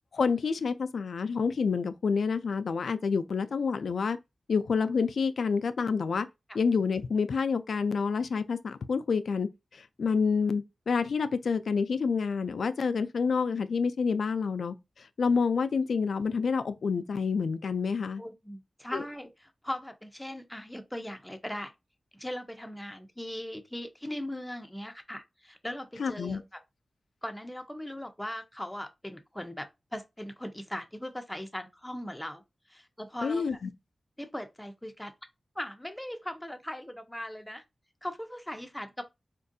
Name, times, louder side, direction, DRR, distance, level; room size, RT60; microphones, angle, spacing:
voice 1, 0.1-4.2 4.5-6.3 6.5-18.2 18.9-19.0 26.0-26.4 33.2-33.7, left 5 dB, 85° left, 0.3 m, -28 dB
voice 2, 18.2-21.7 22.1-26.6 27.2-32.4 32.7-33.5 34.2-35.1 35.6-37.6 38.0-39.0, left 1 dB, 10° left, 0.7 m, -39 dB
4.4 x 2.4 x 2.6 m
cardioid pair, 65°, 0 cm